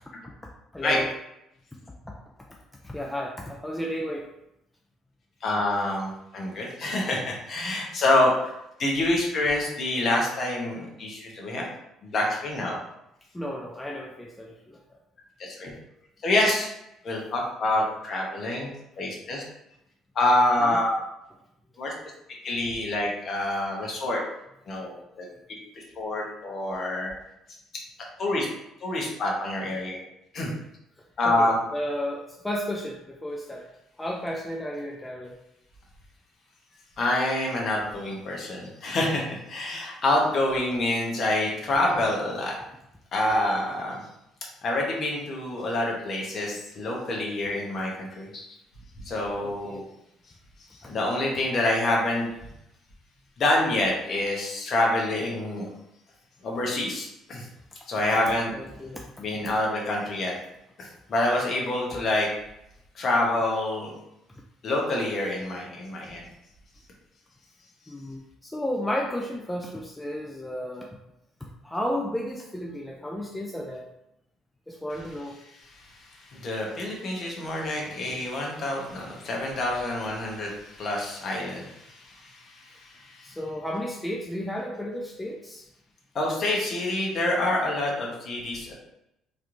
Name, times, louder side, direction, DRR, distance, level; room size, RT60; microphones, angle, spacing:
voice 1, 0.7-1.1 2.0-2.2 2.8-4.3 13.3-14.8 20.6-20.8 31.2-33.7 34.0-35.3 40.4-40.5 49.4-49.8 58.5-59.1 67.9-70.9 71.4-73.9 74.7-75.4 83.2-85.7, equal, 10° left, 0 dB, 0.3 m, -33 dB
voice 2, 5.4-8.5 8.8-11.7 12.0-12.8 15.4-15.7 16.2-16.7 17.0-18.7 19.0-19.4 20.1-20.9 21.8-21.9 22.4-24.2 24.7-25.2 26.0-27.1 28.2-28.5 28.8-30.0 30.3-30.5 31.2-31.6 37.0-42.6 43.1-44.0 44.6-48.4 49.0-49.8 50.7-52.3 53.4-55.6 56.4-57.4 57.9-58.5 59.2-60.3 60.8-62.3 62.9-63.9 64.6-66.2 75.6-83.3 86.1-88.7, left 1 dB, 45° left, -2 dB, 0.9 m, -27 dB
3.2 x 2.9 x 2.5 m, 0.84 s
cardioid pair, 120°, 0 cm